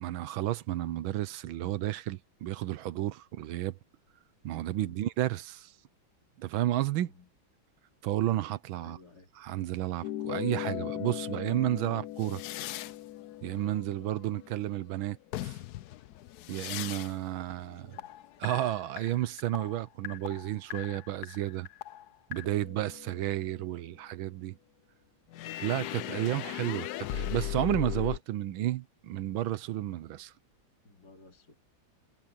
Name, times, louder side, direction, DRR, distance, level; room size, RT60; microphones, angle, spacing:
voice 1, 0.0-3.8 4.4-5.7 6.4-7.1 8.0-9.0 9.3-12.4 13.4-15.2 15.4-15.6 16.5-18.0 18.4-21.7 22.3-24.6 25.6-30.3, right 13 dB, 75° right, 1.5 m, -32 dB
voice 2, 4.6-4.9 7.1-7.3 8.8-9.3 17.8-18.1 26.3-26.5 30.8-31.6, left 2 dB, 50° left, 3.8 m, -55 dB
sound 1, 10.0-15.0 15.3-17.2 17.5-23.7 25.3-28.2, left 14 dB, 85° left, 0.8 m, -38 dB
omnidirectional pair, 2.3 m